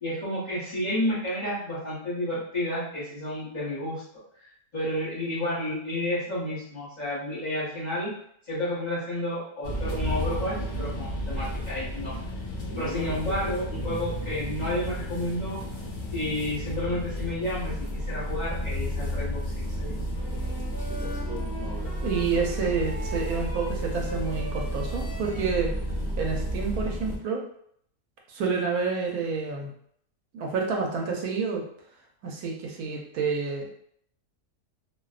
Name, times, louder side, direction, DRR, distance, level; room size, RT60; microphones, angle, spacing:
voice 1, 0.0-4.0 4.7-8.1 8.5-12.1 12.7-15.6 16.1-19.5 19.8-19.9, left 1 dB, 40° left, -8 dB, 0.6 m, -31 dB
sound 1, 9.6-27.2, equal, 75° left, 0.4 m, -32 dB
sound 2, 20.2-25.5, equal, 20° right, 0.3 m, -41 dB
voice 2, 22.0-25.7 26.2-27.4 28.3-29.7 30.3-31.6 32.2-33.7, right 5 dB, 75° right, 0 dB, 1.0 m, -29 dB
2.6 x 2.1 x 2.3 m, 0.66 s
omnidirectional pair, 1.7 m